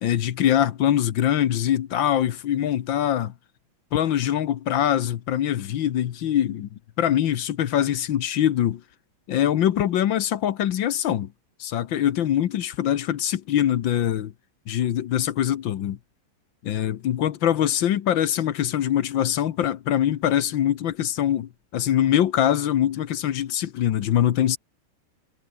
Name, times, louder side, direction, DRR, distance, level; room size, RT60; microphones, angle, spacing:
voice 1, 0.0-3.3 3.9-6.7 7.0-8.8 9.3-11.3 11.6-14.3 14.7-16.0 16.6-24.6, left 11 dB, 70° left, 1.7 m, -23 dB
omnidirectional pair, 2.3 m